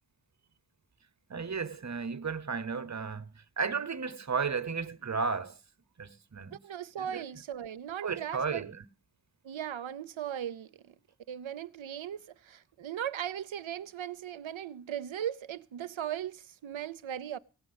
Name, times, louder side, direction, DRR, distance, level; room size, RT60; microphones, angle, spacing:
voice 1, 1.3-3.3 3.6-5.6 6.0-6.6 7.0-7.2 8.0-8.8, right 5 dB, 35° right, 0.9 m, -34 dB
voice 2, 6.5-8.7 9.4-10.9 11.3-17.4, right 10 dB, 90° right, 0.7 m, -38 dB
17.0 x 6.3 x 9.5 m
wide cardioid pair, 70°, 45 cm